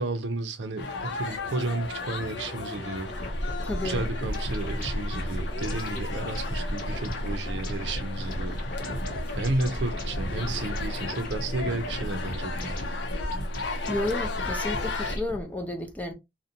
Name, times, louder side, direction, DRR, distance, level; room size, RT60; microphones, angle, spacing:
voice 1, 0.0-3.1 3.8-8.6 9.3-12.9, right 2 dB, 85° right, 0.5 m, -32 dB
sound 1, 0.8-15.2, left 3 dB, 90° left, 0.6 m, -35 dB
sound 2, 3.0-15.4, equal, 50° left, 0.8 m, -33 dB
voice 2, 3.6-4.0 13.9-16.1, left 2 dB, 10° left, 0.4 m, -32 dB
2.5 x 2.1 x 2.7 m
head